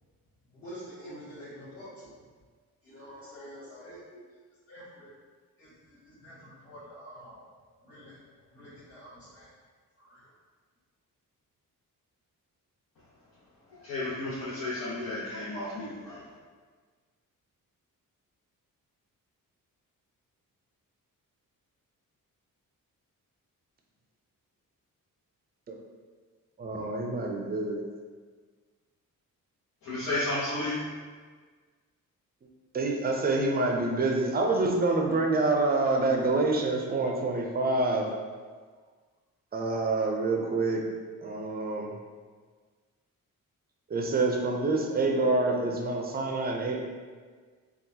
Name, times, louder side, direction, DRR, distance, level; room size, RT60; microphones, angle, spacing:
voice 1, 0.5-2.2 2.8-4.4 4.7-5.1 5.6-7.5 7.8-9.5 10.0-10.3, equal, 40° left, -14 dB, 1.4 m, -47 dB
voice 2, 13.7-16.2 29.8-30.8, left 2 dB, 75° left, -10 dB, 0.9 m, -32 dB
voice 3, 26.6-27.8 32.7-38.1 39.5-40.8 41.2-42.0 43.9-46.8, right 2 dB, 25° right, 1 dB, 0.5 m, -27 dB
3.7 x 2.4 x 2.7 m, 1.5 s
cardioid pair, 95°, 35 cm